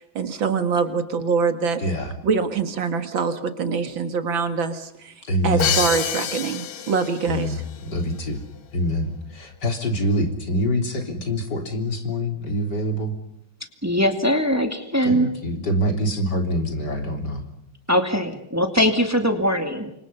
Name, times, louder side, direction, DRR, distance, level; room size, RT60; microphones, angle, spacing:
voice 1, 0.0-1.8 2.2-5.1 5.4-7.6, right 5 dB, 70° right, 8 dB, 2.5 m, -24 dB
voice 2, 1.8-2.1 5.3-5.7 7.3-8.4 8.7-13.1 15.0-17.4, equal, 55° left, 4 dB, 4.1 m, -25 dB
Crash cymbal, 5.6-7.5, left 9 dB, 80° left, 2.1 m, -26 dB
voice 3, 13.8-15.3 17.9-19.9, equal, 10° right, 6 dB, 2.2 m, -21 dB
29.5 x 25.5 x 5.6 m, 0.78 s
omnidirectional pair, 2.2 m